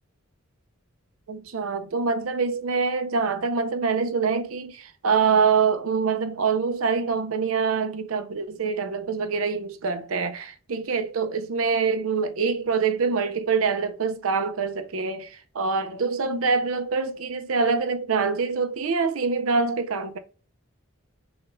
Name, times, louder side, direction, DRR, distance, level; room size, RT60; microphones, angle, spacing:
voice 1, 1.3-20.2, right 5 dB, 85° right, 0.6 m, -25 dB
6.2 x 2.4 x 3.0 m
head